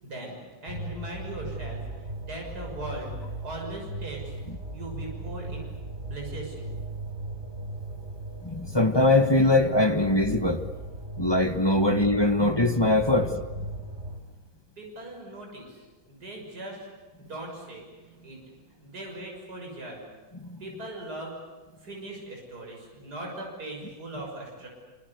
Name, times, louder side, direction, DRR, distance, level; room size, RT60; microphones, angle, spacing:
voice 1, 0.0-3.1 3.4-4.2 4.7-5.6 6.0-6.7 14.8-16.9 17.2-20.0 20.6-21.3 21.8-24.7, right 1 dB, 55° right, 0 dB, 7.0 m, -39 dB
sound 1, 0.7-14.2, right 1 dB, 35° right, 4.2 m, -38 dB
voice 2, 8.4-10.6 11.2-13.6 20.4-20.6, left 2 dB, 15° left, 7 dB, 1.2 m, -22 dB
26.0 x 26.0 x 8.1 m, 1.2 s
omnidirectional pair, 2.0 m